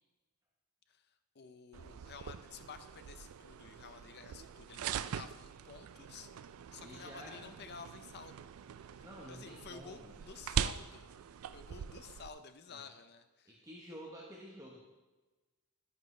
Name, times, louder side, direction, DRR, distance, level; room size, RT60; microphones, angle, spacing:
voice 1, 0.9-6.3 6.7-8.5 9.3-11.1 11.5-13.6, left 5 dB, 50° left, 9 dB, 0.6 m, -52 dB
sound 1, 1.7-12.3, right 8 dB, 70° right, 0.3 m, -42 dB
voice 2, 6.8-7.6 9.0-10.1 12.7-12.9 13.5-14.8, equal, 15° right, -3 dB, 1.1 m, -50 dB
10.5 x 9.5 x 3.2 m, 1.2 s
head